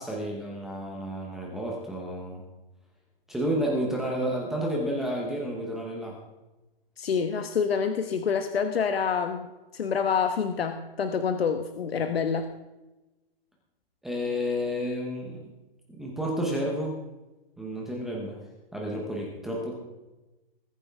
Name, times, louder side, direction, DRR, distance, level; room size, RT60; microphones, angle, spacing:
voice 1, 0.0-2.4 3.3-6.2 14.0-15.5 15.9-17.0 17.6-18.4 18.7-19.7, equal, ahead, -2 dB, 0.8 m, -31 dB
voice 2, 7.0-9.5 9.7-12.5, left 6 dB, 90° left, 7 dB, 1.3 m, -27 dB
21.5 x 9.7 x 3.5 m, 1.1 s
hypercardioid pair, 175°, 30 cm